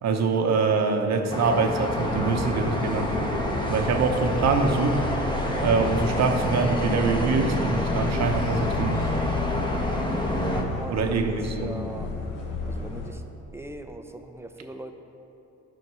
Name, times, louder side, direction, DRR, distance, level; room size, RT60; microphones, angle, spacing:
voice 1, 0.0-3.3 3.7-5.0 5.6-9.0 10.9-11.7, right 4 dB, 60° right, 5 dB, 0.9 m, -24 dB
sound 1, 1.3-10.6, left 1 dB, 15° left, 1.1 m, -28 dB
sound 2, 2.0-13.1, left 3 dB, 85° left, 1.2 m, -33 dB
voice 2, 10.5-12.1 12.7-13.3 13.5-14.9, right 1 dB, 10° right, 6 dB, 0.5 m, -40 dB
9.3 x 4.4 x 6.1 m, 2.9 s
cardioid pair, 90°, 30 cm